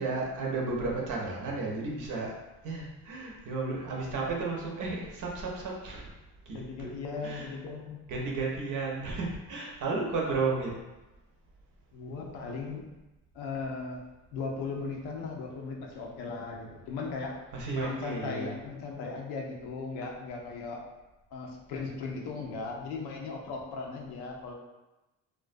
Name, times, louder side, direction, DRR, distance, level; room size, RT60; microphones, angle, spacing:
voice 1, 0.0-2.3 2.6-6.1 6.5-6.9 7.2-7.5 8.1-10.7 17.5-18.5, right 3 dB, 55° right, -2 dB, 0.7 m, -33 dB
voice 2, 6.5-8.1 11.9-12.9 13.3-14.0 14.3-17.4 17.7-20.8 21.3-24.5, left 4 dB, 85° left, 0 dB, 0.6 m, -37 dB
2.3 x 2.1 x 2.5 m, 1.0 s
cardioid pair, 90°, 38 cm